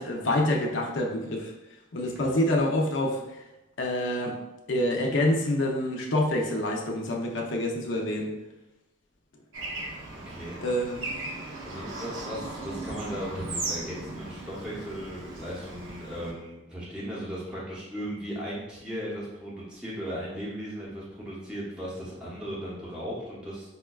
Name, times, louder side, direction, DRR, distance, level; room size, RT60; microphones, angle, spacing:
voice 1, 0.0-1.5 1.9-3.2 3.8-4.4 4.7-8.4 10.6-11.1, left 1 dB, 65° left, 1 dB, 0.5 m, -27 dB
voice 2, 2.0-2.3 10.3-10.6 11.6-23.7, equal, 5° right, -7 dB, 0.7 m, -37 dB
Bird / Traffic noise roadway noise, 9.5-16.3, right 2 dB, 75° right, 0.7 m, -37 dB
4.9 x 2.2 x 2.2 m, 0.95 s
head